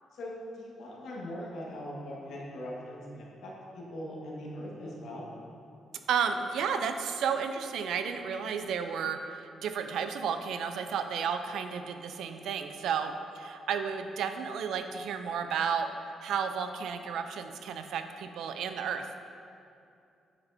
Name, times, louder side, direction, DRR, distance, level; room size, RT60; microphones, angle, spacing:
voice 1, 0.1-5.2, equal, 70° left, -4 dB, 1.6 m, -41 dB
voice 2, 6.1-15.9 16.2-19.1, right 7 dB, 80° right, 7 dB, 0.5 m, -32 dB
9.6 x 7.0 x 2.7 m, 2.6 s
cardioid pair, 170°, 0 cm